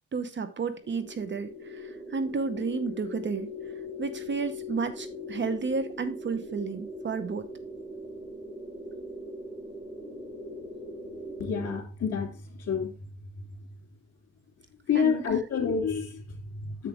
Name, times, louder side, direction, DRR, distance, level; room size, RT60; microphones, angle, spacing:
voice 1, 0.1-3.5 4.0-7.5 14.9-15.2, right 5 dB, 40° right, 0.9 m, -32 dB
sound 1, 0.8-11.8, left 2 dB, 20° right, 3.6 m, -40 dB
voice 2, 11.4-12.9 14.9-16.9, left 6 dB, 55° left, 3.1 m, -29 dB
7.5 x 7.0 x 3.4 m
cardioid pair, 90°, 30 cm